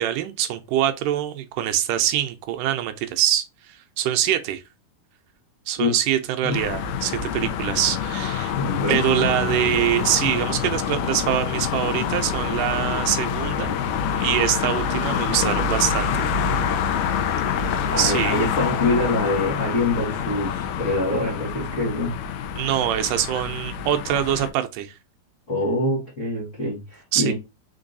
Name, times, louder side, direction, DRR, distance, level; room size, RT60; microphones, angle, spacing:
voice 1, 0.0-3.5 4.0-4.6 5.7-8.6 8.9-13.8 14.2-16.3 18.0-18.4 22.6-25.0 27.1-27.3, right 11 dB, 80° right, 2.1 m, -24 dB
sound 1, 6.5-24.5, left 7 dB, 80° left, 2.0 m, -26 dB
voice 2, 8.6-9.3 17.9-22.1 25.5-27.3, left 2 dB, 40° left, 1.1 m, -25 dB
5.2 x 3.8 x 2.6 m
omnidirectional pair, 3.9 m